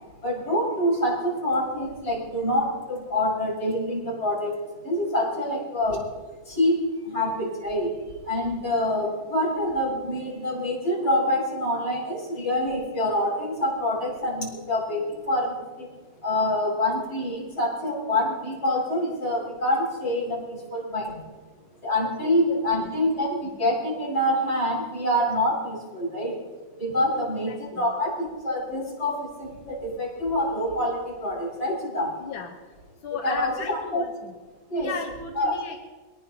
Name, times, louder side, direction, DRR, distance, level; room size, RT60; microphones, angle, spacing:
voice 1, 0.2-6.1 6.4-8.0 8.2-15.9 16.2-21.2 21.8-26.4 26.8-32.2 33.1-34.0 34.7-34.9 35.4-35.5, left 1 dB, 50° left, -6 dB, 6.1 m, -26 dB
voice 2, 22.0-22.9 27.0-27.9 32.2-32.6 33.0-34.3 34.8-35.8, left 5 dB, 90° left, 2 dB, 1.9 m, -37 dB
22.5 x 19.5 x 2.9 m, 1.3 s
omnidirectional pair, 2.1 m